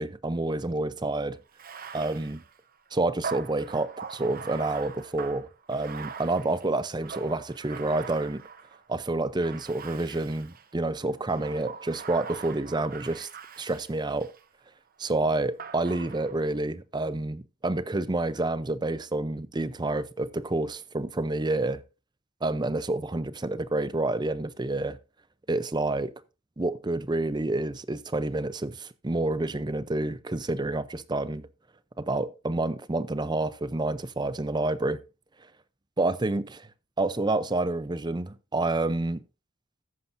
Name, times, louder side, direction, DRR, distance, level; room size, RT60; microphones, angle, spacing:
voice 1, 0.0-1.4 1.9-2.4 2.9-8.4 8.9-13.3 13.6-14.3 15.0-21.8 22.4-25.0 25.5-26.1 26.6-31.5 32.0-35.0 36.0-36.7 37.0-39.2, right 2 dB, 20° right, 0.6 m, -28 dB
Bathtub (filling or washing), 1.5-8.9 9.4-10.7 11.3-14.4 15.6-16.6, right 6 dB, 45° right, 0.9 m, -42 dB
13.5 x 10.0 x 2.6 m
head